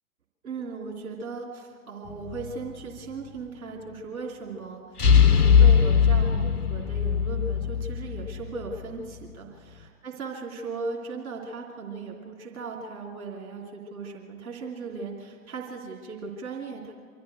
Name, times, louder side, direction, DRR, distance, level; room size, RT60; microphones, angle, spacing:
voice 1, 0.4-4.8 5.1-16.9, right 4 dB, 65° right, -1 dB, 3.1 m, -37 dB
sound 1, 2.1-2.6 5.0-8.8, left 7 dB, 85° left, 0.9 m, -20 dB
25.0 x 14.0 x 7.9 m, 2.2 s
figure-of-eight pair, 100°, 45 cm